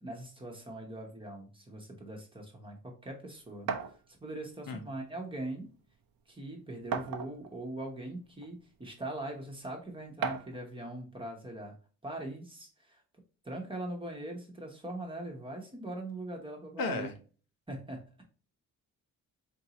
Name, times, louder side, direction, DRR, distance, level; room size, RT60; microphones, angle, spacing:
voice 1, 0.0-3.7 4.1-5.7 6.3-11.8 12.0-13.0 13.4-17.1 17.7-18.2, right 1 dB, 15° right, 1 dB, 1.0 m, -41 dB
sound 1, 3.7-4.0 5.1-5.2 5.6-5.7 6.9-7.6 8.4-8.5 10.2-10.6, right 6 dB, 80° right, 0.7 m, -34 dB
voice 2, 16.8-17.1, left 3 dB, 75° left, 5 dB, 1.0 m, -33 dB
4.5 x 2.7 x 2.9 m, 0.38 s
wide cardioid pair, 155°, 35 cm